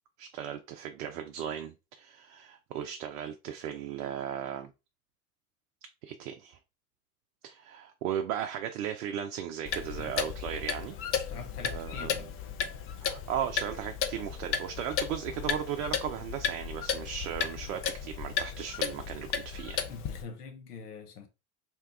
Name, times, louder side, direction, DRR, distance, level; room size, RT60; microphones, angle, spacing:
voice 1, 0.2-4.7 6.0-6.6 7.4-11.0 11.6-12.2 13.0-19.8, right 9 dB, 70° right, 0.6 m, -36 dB
Clock, 9.7-20.2, left 7 dB, 30° left, 0.5 m, -34 dB
voice 2, 11.1-12.3 19.9-21.3, left 5 dB, 85° left, 0.9 m, -44 dB
2.9 x 2.2 x 3.4 m
hypercardioid pair, 85°, 45 cm